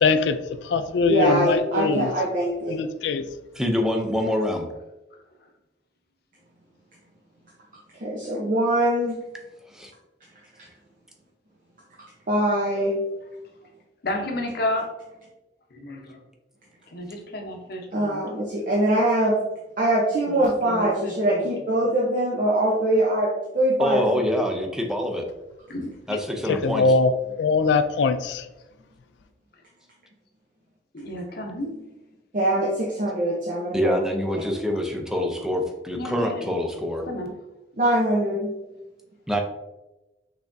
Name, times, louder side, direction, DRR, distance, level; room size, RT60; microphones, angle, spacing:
voice 1, 0.0-0.4 0.7-2.1 2.7-3.2 26.6-27.1 27.4-28.4, left 4 dB, 80° left, 11 dB, 0.4 m, -21 dB
voice 2, 1.0-2.8 8.0-9.2 12.3-13.0 17.9-19.4 19.8-23.3 23.5-24.2 32.3-34.0 37.8-38.5, right 1 dB, 50° right, -4 dB, 0.8 m, -23 dB
voice 3, 3.5-4.7 9.7-9.9 23.8-25.2 26.1-26.9 33.7-37.0 39.3-39.4, left 1 dB, 5° right, 3 dB, 0.5 m, -25 dB
voice 4, 14.0-14.9 15.7-16.2 16.9-18.2 20.2-21.5 25.7-25.9 30.9-31.7 35.9-36.6 37.1-37.4, left 1 dB, 60° left, 2 dB, 0.8 m, -31 dB
5.9 x 3.4 x 2.6 m, 1.0 s
head